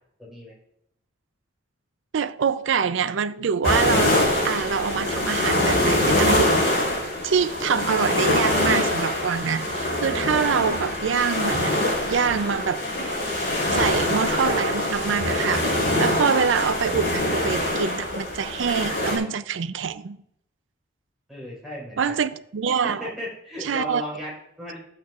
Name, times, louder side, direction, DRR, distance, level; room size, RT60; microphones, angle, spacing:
voice 1, 0.2-0.5 21.3-22.2 22.8-24.8, left 1 dB, ahead, 4.0 m, -35 dB
voice 2, 2.1-4.2 4.4-6.5 7.2-12.8 13.7-20.2 22.0-23.1 23.6-24.0, right 6 dB, 75° right, 0.5 m, -25 dB
sound 1, 3.6-19.2, left 1 dB, 65° left, 4.2 m, -24 dB
12.5 x 8.7 x 2.4 m
head